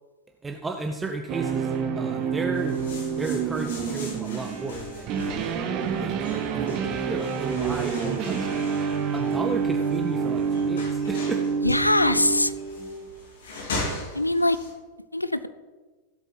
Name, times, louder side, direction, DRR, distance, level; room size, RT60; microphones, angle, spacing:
voice 1, 0.4-5.2 6.0-8.7 9.1-11.5, right 3 dB, 15° right, 4 dB, 0.8 m, -33 dB
sound 1, 1.3-13.2, right 6 dB, 40° right, 1.5 m, -28 dB
sound 2, 2.5-14.7, left 2 dB, 60° left, 2.7 m, -39 dB
voice 2, 11.6-12.5 14.1-14.6 15.1-15.5, left 1 dB, 85° left, 14 dB, 0.5 m, -22 dB
17.0 x 8.1 x 4.1 m, 1.3 s
figure-of-eight pair, 90°, 0 cm